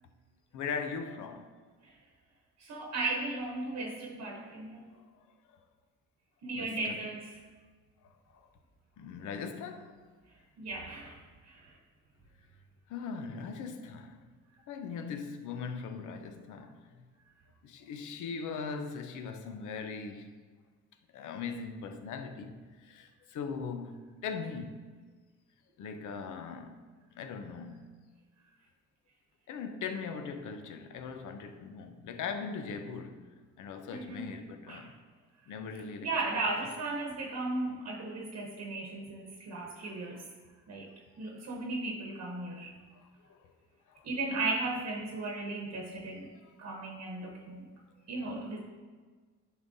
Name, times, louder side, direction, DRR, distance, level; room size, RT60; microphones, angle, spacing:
voice 1, 0.5-1.5 4.9-5.0 5.5-5.6 6.5-7.0 9.0-10.0 12.9-14.3 14.7-16.9 17.6-20.4 21.1-24.9 25.8-26.8 27.2-27.8 29.5-33.3 33.6-34.9 35.5-36.4 40.1-40.2 40.9-41.0 42.9-43.5 43.9-44.1, left 5 dB, 75° left, 0.7 m, -40 dB
voice 2, 2.6-4.9 6.4-7.4 10.6-11.2 11.4-11.7 33.9-34.4 34.7-34.9 36.0-40.2 40.7-40.9 41.2-42.7 44.0-46.3 46.6-47.7 48.1-48.6, right 2 dB, 55° right, 1.0 m, -36 dB
9.3 x 5.6 x 2.7 m
cardioid pair, 90°, 30 cm